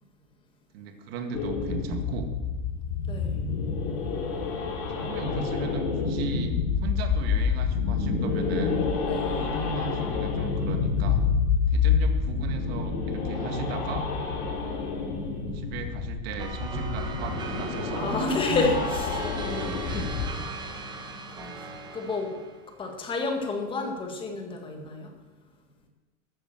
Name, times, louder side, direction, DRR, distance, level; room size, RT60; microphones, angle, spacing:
voice 1, 0.7-2.3 5.0-6.5 6.8-8.9 9.4-11.2 11.7-14.1 15.5-18.7 19.9-20.5, right 4 dB, 45° right, 5 dB, 2.1 m, -36 dB
sound 1, 1.3-20.3, left 5 dB, 35° left, 3.0 m, -28 dB
voice 2, 3.1-3.4 9.1-9.5 17.9-20.1 21.1-22.3 22.8-25.1, left 3 dB, 10° left, 3 dB, 1.7 m, -31 dB
sound 2, 16.4-22.6, right 4 dB, 10° right, 1.2 m, -38 dB
14.0 x 8.7 x 7.9 m, 1.2 s
supercardioid pair, 170°, 41 cm